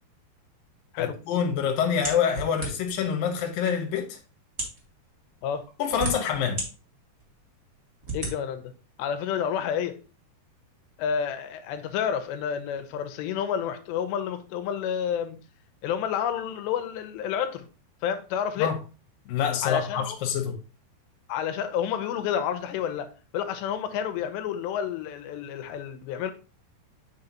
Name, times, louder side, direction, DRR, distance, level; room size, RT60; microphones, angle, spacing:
voice 1, 1.0-4.2 5.8-6.6 18.6-18.8 19.3-20.6, left 7 dB, 65° left, 2.6 m, -26 dB
sound 1, 2.0-3.0 3.8-3.9 4.5-4.8 5.6-6.7 7.2-7.3 8.0-8.3, right 2 dB, 45° right, 0.8 m, -32 dB
voice 2, 8.1-8.7 9.0-10.0 11.0-15.4 15.8-17.7 18.0-18.7 19.6-20.2 21.3-23.1 23.3-26.3, left 8 dB, 90° left, 3.0 m, -29 dB
7.8 x 5.7 x 2.8 m
omnidirectional pair, 4.8 m